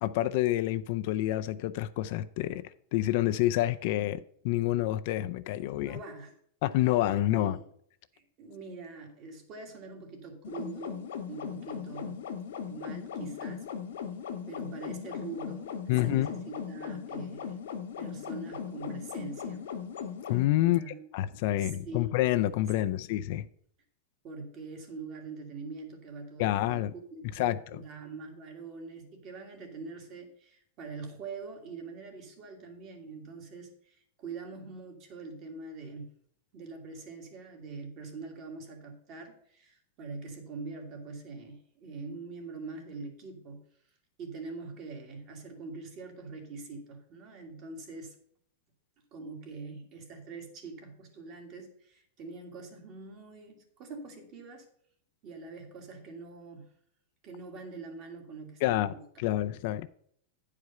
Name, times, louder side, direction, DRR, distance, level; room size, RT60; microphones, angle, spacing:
voice 1, 0.0-2.6 2.9-6.0 6.6-7.6 15.9-16.3 20.3-20.8 21.1-23.5 26.4-26.9 27.4-27.8 58.6-59.9, left 14 dB, 50° left, 0.4 m, -28 dB
voice 2, 5.8-6.4 7.3-7.7 8.1-12.2 12.6-13.7 14.5-17.6 18.0-19.7 20.6-21.1 21.6-22.2 22.9-23.0 24.2-36.1 36.5-43.6 44.2-48.2 49.1-54.7 55.2-56.7 57.2-59.0, right 3 dB, 35° right, 1.8 m, -44 dB
sound 1, 10.4-20.4, left 7 dB, 85° left, 1.4 m, -38 dB
9.5 x 4.9 x 5.6 m
supercardioid pair, 160°, 0 cm